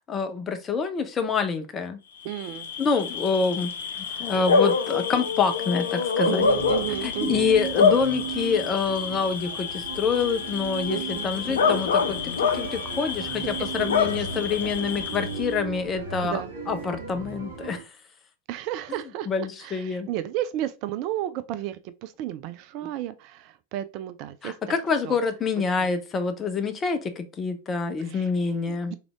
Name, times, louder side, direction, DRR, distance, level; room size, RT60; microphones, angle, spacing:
voice 1, 0.1-2.0 2.8-3.7 4.0-6.4 7.0-17.9 19.3-20.1 24.4-29.0, left 5 dB, 25° left, 0.8 m, -27 dB
Bark / Cricket, 2.2-15.5, left 5 dB, 65° left, 0.6 m, -27 dB
voice 2, 2.2-2.7 4.0-4.3 4.9-5.0 6.2-7.5 10.9-11.8 13.6-14.7 16.2-16.5 18.5-19.3 19.6-24.6 25.0-25.2 28.0-28.3 28.6-29.0, right 13 dB, 40° right, 0.3 m, -33 dB
sound 1, 6.4-17.8, right 6 dB, 65° right, 1.7 m, -36 dB
3.6 x 3.4 x 3.5 m
figure-of-eight pair, 90°, 0 cm